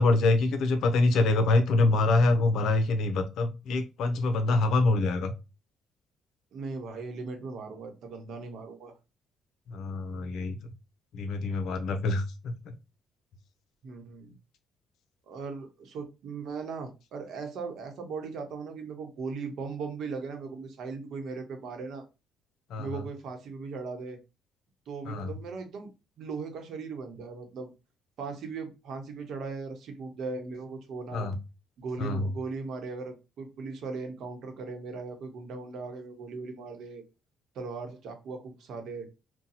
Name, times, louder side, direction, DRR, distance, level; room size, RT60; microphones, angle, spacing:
voice 1, 0.0-5.3 9.7-10.6 11.1-12.5 22.7-23.0 25.1-25.3 31.1-31.4 32.0-32.3, left 2 dB, 75° left, 8 dB, 0.6 m, -25 dB
voice 2, 6.5-8.9 13.8-14.3 15.3-22.0 22.8-24.2 24.9-25.9 26.2-27.7 28.2-31.3 31.8-37.0 37.5-39.1, right 4 dB, 65° right, 5 dB, 0.9 m, -38 dB
2.7 x 2.2 x 4.0 m, 0.28 s
cardioid pair, 115°, 0 cm